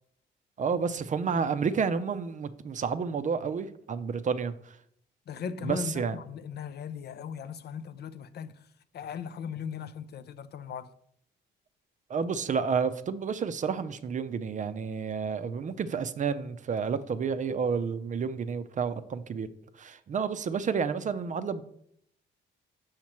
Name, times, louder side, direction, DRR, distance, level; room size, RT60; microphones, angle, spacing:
voice 1, 0.6-4.8 5.6-6.2 12.1-19.5 19.8-21.6, right 6 dB, 40° right, 0.5 m, -30 dB
voice 2, 5.3-8.7 8.9-10.9, left 7 dB, 55° left, 0.5 m, -38 dB
6.4 x 3.0 x 5.8 m
cardioid pair, 90°, 20 cm